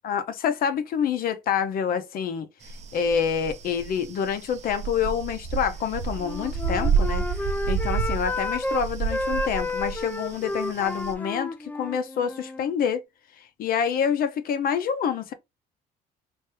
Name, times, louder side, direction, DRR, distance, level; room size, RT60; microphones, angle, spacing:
voice 1, 0.0-2.5 2.9-7.2 7.7-13.0 13.6-15.3, left 7 dB, 60° left, 0.7 m, -27 dB
sound 1, 2.7-11.1, right 6 dB, 40° right, 0.5 m, -29 dB
Wind instrument woodwind instrument, 6.1-8.8 9.1-12.7, left 2 dB, 10° left, 0.4 m, -31 dB
3.4 x 2.7 x 3.0 m
cardioid pair, 110°, 17 cm